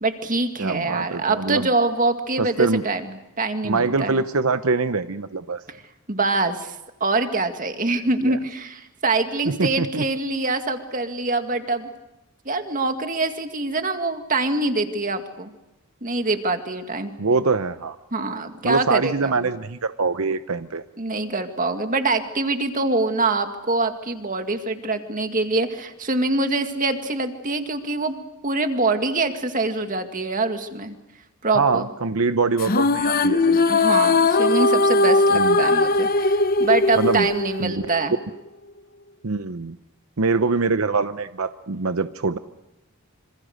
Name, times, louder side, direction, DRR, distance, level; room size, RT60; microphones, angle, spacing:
voice 1, 0.0-3.0 3.4-4.2 6.1-6.7 7.0-11.9 12.5-15.5 16.0-17.1 18.1-19.4 21.0-28.2 28.4-31.0 31.4-31.9 33.5-38.1, right 3 dB, 35° right, 6 dB, 2.1 m, -24 dB
voice 2, 0.6-1.7 2.4-2.8 3.6-5.6 8.2-8.4 9.5-10.0 17.2-18.0 18.6-20.8 31.5-33.6 35.3-35.6 37.0-37.3 37.6-37.8 39.2-39.8 40.2-42.4, right 4 dB, 70° right, 11 dB, 0.8 m, -23 dB
sound 1, 32.6-38.1, left 3 dB, 40° left, 0.8 m, -19 dB
26.5 x 26.5 x 6.5 m, 0.95 s
head